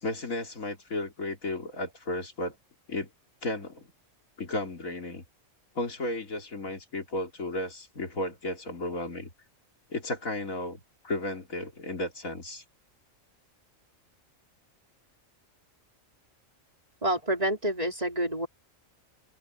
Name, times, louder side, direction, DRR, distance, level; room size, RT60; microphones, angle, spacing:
voice 1, 0.0-2.6 2.9-3.1 3.4-3.9 4.4-5.2 5.8-9.3 9.9-12.6, left 2 dB, 90° left, 3.7 m, -34 dB
voice 2, 17.0-18.5, right 1 dB, 30° right, 4.8 m, -28 dB
open air
omnidirectional pair, 1.4 m